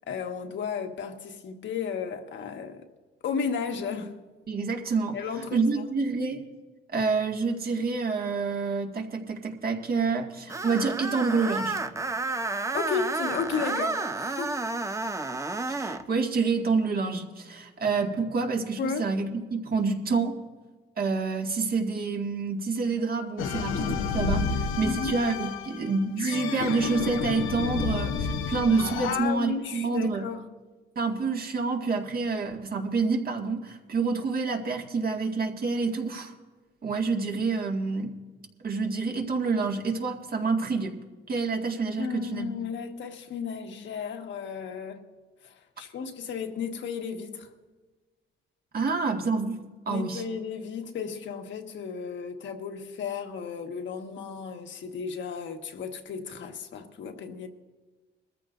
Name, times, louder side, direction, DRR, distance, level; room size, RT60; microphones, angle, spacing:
voice 1, 0.1-2.8 3.2-4.2 5.1-5.6 12.7-14.6 18.8-19.0 24.8-25.2 29.0-30.4 42.0-45.1 45.4-47.5 49.9-57.5, left 6 dB, 70° left, 1.6 m, -34 dB
voice 2, 4.5-5.2 5.5-6.4 6.9-11.8 15.7-20.4 21.0-30.3 31.0-36.3 36.8-38.2 38.6-41.0 41.3-42.5 48.7-49.6 49.9-50.2, right 4 dB, 50° right, 2.0 m, -28 dB
Screech, 10.5-16.0, right 3 dB, 15° right, 0.7 m, -31 dB
sound 1, 23.4-29.2, left 5 dB, 90° left, 1.0 m, -30 dB
21.5 x 14.0 x 2.6 m
cardioid pair, 90°, 20 cm